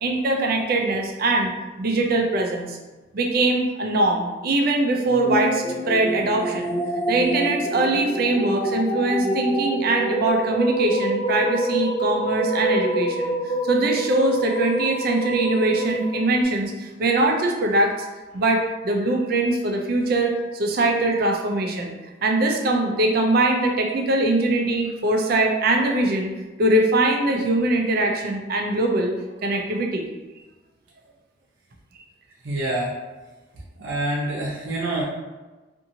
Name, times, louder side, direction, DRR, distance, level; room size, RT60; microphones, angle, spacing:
voice 1, 0.0-1.5 1.8-2.8 3.1-6.7 7.1-17.9 18.3-21.9 22.2-26.3 26.6-29.1 29.4-30.1, right 2 dB, 55° right, 2 dB, 0.4 m, -22 dB
sound 1, 5.0-16.4, right 1 dB, 20° left, 0.3 m, -26 dB
voice 2, 32.4-32.9 33.8-35.0, right 1 dB, 85° right, -6 dB, 0.7 m, -26 dB
2.7 x 2.6 x 2.7 m, 1.2 s
head